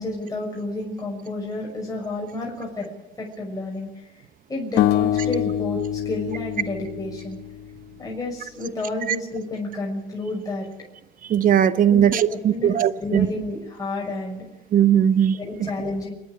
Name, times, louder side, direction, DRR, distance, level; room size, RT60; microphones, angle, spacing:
voice 1, 0.0-2.9 3.2-3.9 4.5-7.4 8.0-10.7 11.9-14.4 15.3-16.1, left 2 dB, 20° left, -3 dB, 6.5 m, -30 dB
sound 1, 4.8-7.9, left 11 dB, 80° left, 1.0 m, -25 dB
voice 2, 11.3-13.3 14.7-15.7, right 9 dB, 55° right, 13 dB, 1.1 m, -19 dB
29.0 x 9.8 x 9.8 m, 0.93 s
cardioid pair, 110°, 17 cm